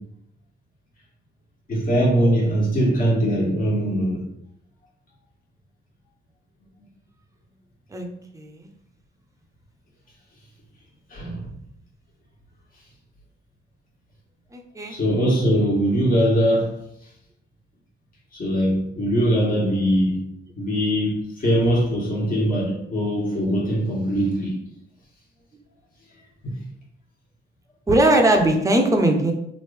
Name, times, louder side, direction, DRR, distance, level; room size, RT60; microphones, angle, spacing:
voice 1, 1.7-4.2 11.1-11.5 14.9-16.7 18.3-20.2 20.5-24.5 26.4-26.6, equal, 45° left, -4 dB, 1.4 m, -21 dB
voice 2, 14.5-15.0 27.9-29.3, right 1 dB, 15° right, 3 dB, 0.6 m, -19 dB
3.1 x 2.6 x 3.2 m, 0.76 s
cardioid pair, 90°, 20 cm